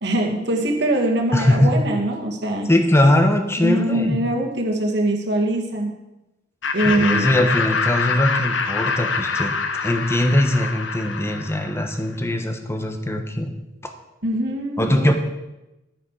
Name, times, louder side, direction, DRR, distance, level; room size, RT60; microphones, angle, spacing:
voice 1, 0.0-2.7 3.6-5.9 6.7-7.4 14.2-14.8, right 1 dB, 65° right, 1 dB, 2.0 m, -22 dB
voice 2, 1.3-1.8 2.7-4.2 6.8-9.5 9.8-13.5 13.8-13.9 14.8-15.1, left 1 dB, 15° left, 6 dB, 1.2 m, -20 dB
Laughter, 6.6-11.9, left 4 dB, 80° left, 1.0 m, -25 dB
12.5 x 9.6 x 4.9 m, 0.97 s
head